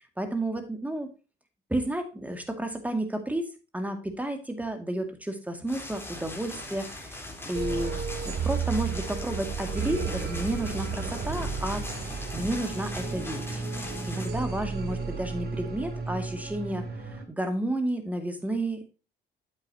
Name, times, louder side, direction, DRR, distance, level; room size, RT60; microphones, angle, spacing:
voice 1, 0.2-1.1 1.7-7.2 7.5-8.0 8.2-13.6 14.1-18.9, right 1 dB, 5° right, 6 dB, 2.2 m, -32 dB
sound 1, 5.7-14.3, left 1 dB, 10° left, 3.8 m, -40 dB
sound 2, 7.5-17.2, right 5 dB, 55° right, 2.2 m, -33 dB
8.9 x 8.1 x 2.8 m, 0.33 s
cardioid pair, 90°, 20 cm